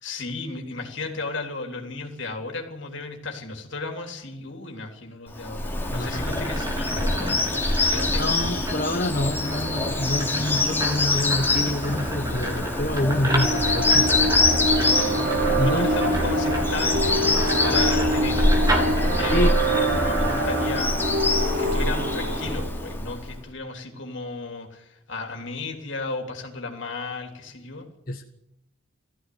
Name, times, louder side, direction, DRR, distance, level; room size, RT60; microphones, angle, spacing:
voice 1, 0.0-8.4 10.2-10.6 14.8-17.2 17.6-21.3 21.6-27.9, left 3 dB, 60° left, 3 dB, 3.5 m, -35 dB
Bird vocalization bird call bird song, 5.3-23.3, left 2 dB, 10° left, 3.1 m, -25 dB
sound 1, 5.6-20.5, right 1 dB, 15° right, 3.8 m, -32 dB
voice 2, 5.9-6.5 8.2-14.1 15.6-15.9 19.3-19.6 28.1-28.2, left 1 dB, 45° left, 4 dB, 1.2 m, -27 dB
sound 2, 13.3-22.6, right 1 dB, 45° right, 6.8 m, -25 dB
18.5 x 15.0 x 9.5 m, 0.81 s
head